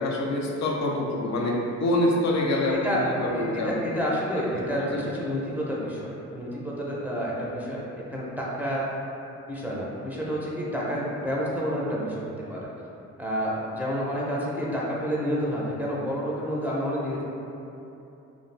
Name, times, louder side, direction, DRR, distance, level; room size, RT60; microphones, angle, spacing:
voice 1, 0.0-3.7 4.8-5.0, left 1 dB, 60° left, -1 dB, 0.5 m, -26 dB
voice 2, 2.7-6.0 6.3-7.8 8.1-8.8 9.5-12.7 13.2-17.2, equal, 5° right, -6 dB, 0.5 m, -29 dB
2.5 x 2.3 x 3.2 m, 2.9 s
cardioid pair, 90°, 30 cm